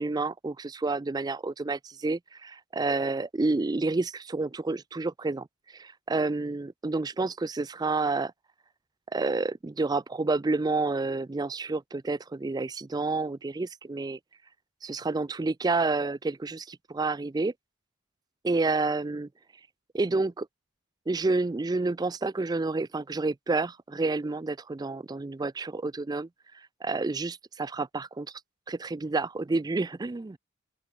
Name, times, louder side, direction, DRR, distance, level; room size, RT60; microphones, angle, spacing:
voice 1, 0.0-5.5 5.7-8.3 9.1-14.2 14.8-17.5 18.4-19.3 19.9-20.5 21.1-26.3 26.8-28.3 28.7-30.4, right 3 dB, 20° right, 0.3 m, -29 dB
open air
head